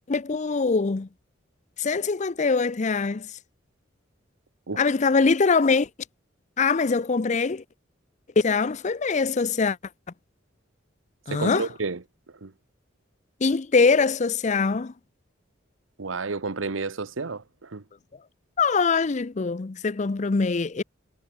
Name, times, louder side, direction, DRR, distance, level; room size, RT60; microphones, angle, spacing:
voice 1, 0.1-1.1 1.8-3.4 4.8-5.9 6.6-7.6 8.4-9.8 11.3-11.7 13.4-14.9 18.6-20.8, left 4 dB, 35° left, 0.5 m, -23 dB
voice 2, 11.3-12.0 12.4-12.5 16.0-17.8, right 4 dB, 90° right, 1.0 m, -31 dB
head